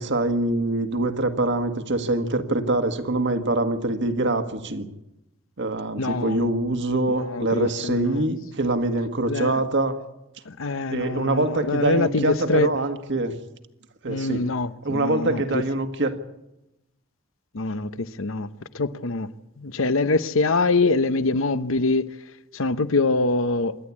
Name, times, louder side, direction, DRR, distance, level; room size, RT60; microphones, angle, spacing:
voice 1, 0.0-4.9 5.6-10.0 10.9-13.3 14.0-14.5 14.8-16.2, right 2 dB, 55° right, 1.7 m, -24 dB
voice 2, 6.0-6.4 7.2-8.3 9.3-9.6 10.6-12.8 14.1-15.6 17.5-18.5 18.7-19.3 19.6-22.1 22.5-23.8, left 3 dB, 65° left, 0.8 m, -24 dB
27.0 x 11.5 x 8.5 m
head